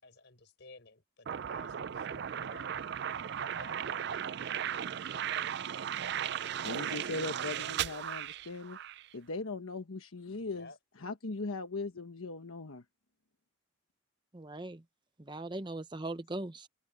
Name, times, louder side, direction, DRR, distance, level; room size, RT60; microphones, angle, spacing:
voice 1, 0.0-2.8 3.4-4.2 4.5-5.6 10.4-10.8, left 3 dB, 55° left, 5.7 m, -55 dB
sound 1, 1.3-9.1, right 9 dB, 50° right, 0.4 m, -36 dB
voice 2, 6.6-8.8 9.1-10.7 11.0-12.8, left 3 dB, 80° left, 1.2 m, -39 dB
voice 3, 14.3-14.8 15.2-16.7, right 2 dB, 20° right, 0.7 m, -39 dB
head